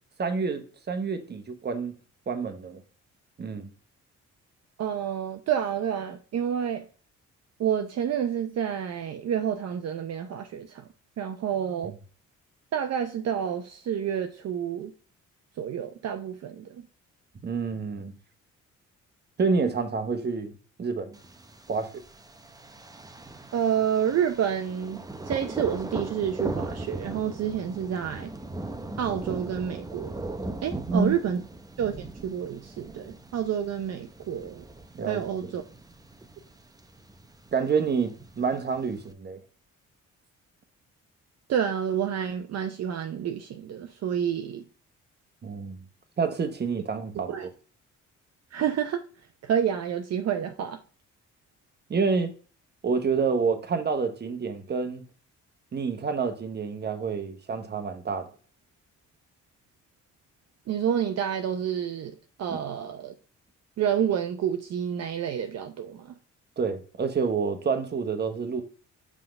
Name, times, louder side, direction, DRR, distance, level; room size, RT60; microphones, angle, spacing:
voice 1, 0.2-1.9 2.3-2.8 3.4-3.7 17.4-18.1 19.4-20.5 20.8-21.2 21.7-21.9 30.9-31.2 34.9-35.5 37.5-39.4 45.4-45.8 46.2-47.5 51.9-52.3 52.8-55.1 55.7-58.3 62.5-62.6 66.6-68.6, right 5 dB, 35° right, 1.0 m, -28 dB
voice 2, 4.8-6.9 7.6-10.9 11.2-11.9 12.7-14.9 15.6-16.8 23.5-28.3 29.0-30.2 30.6-31.4 31.8-34.6 35.1-35.6 41.5-44.6 47.3-47.5 48.5-49.0 49.4-50.8 60.7-62.1 62.4-63.1 63.8-66.1, right 9 dB, 55° right, 0.7 m, -29 dB
Thunder, 21.1-39.1, right 2 dB, 10° right, 0.6 m, -39 dB
5.8 x 3.7 x 5.3 m
cardioid pair, 90°, 30 cm